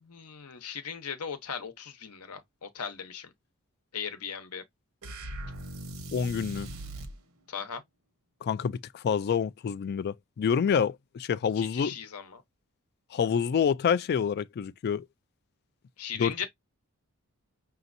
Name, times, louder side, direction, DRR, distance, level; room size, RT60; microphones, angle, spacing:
voice 1, 0.0-3.3 3.9-4.6 7.5-7.8 11.6-12.4 16.0-16.5, left 7 dB, 80° left, 0.9 m, -38 dB
sound 1, 5.0-7.2, right 1 dB, 70° right, 1.0 m, -39 dB
voice 2, 6.1-6.7 8.4-11.9 13.1-15.0 16.2-16.5, left 7 dB, 45° left, 0.3 m, -27 dB
5.9 x 2.7 x 2.6 m
head